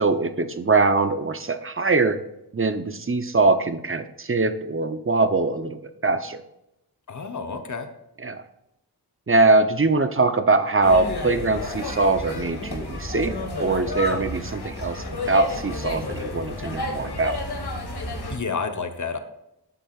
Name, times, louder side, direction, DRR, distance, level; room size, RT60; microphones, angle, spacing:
voice 1, 0.0-2.2 2.5-6.4 8.2-8.4 9.3-17.4, right 3 dB, 30° right, 10 dB, 0.8 m, -22 dB
voice 2, 7.1-7.9 17.9-18.0 18.3-19.2, left 5 dB, 45° left, 8 dB, 1.0 m, -30 dB
sound 1, 10.8-18.4, left 2 dB, 75° left, 1.7 m, -31 dB
12.0 x 7.5 x 2.5 m, 0.86 s
wide cardioid pair, 60°, 40 cm